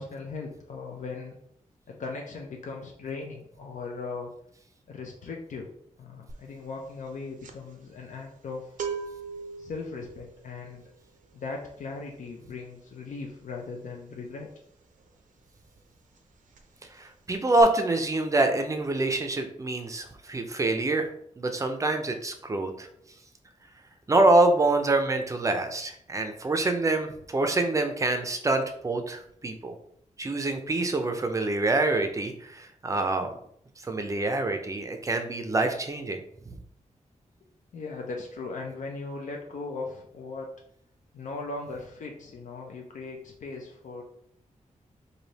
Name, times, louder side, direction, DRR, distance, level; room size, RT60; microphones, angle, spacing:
voice 1, 0.0-1.4 1.9-4.3 4.9-5.7 6.0-8.7 9.6-10.8 11.3-14.5 37.7-40.6 41.1-44.0, left 3 dB, 75° left, 1 dB, 0.5 m, -38 dB
sound 1, 6.3-6.6 6.8-15.4 15.7-15.9 16.2-17.0 17.3-17.6, right 5 dB, 90° right, 0.5 m, -41 dB
voice 2, 17.0-21.1 21.4-22.9 24.1-29.7 30.2-33.3 33.8-36.2 36.5-36.6, right 2 dB, 25° right, 6 dB, 0.4 m, -26 dB
3.3 x 2.6 x 4.0 m, 0.69 s
wide cardioid pair, 160°, 13 cm